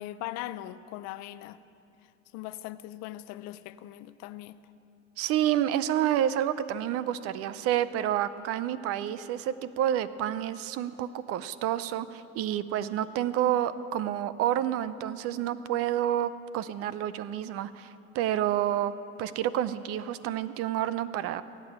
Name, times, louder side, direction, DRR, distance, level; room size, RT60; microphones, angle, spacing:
voice 1, 0.0-1.6 2.3-4.6, left 14 dB, 45° left, 15 dB, 0.6 m, -40 dB
voice 2, 5.2-18.9 19.2-21.4, right 11 dB, 40° right, 15 dB, 0.5 m, -29 dB
17.0 x 8.9 x 7.3 m, 2.8 s
hypercardioid pair, 105°, 37 cm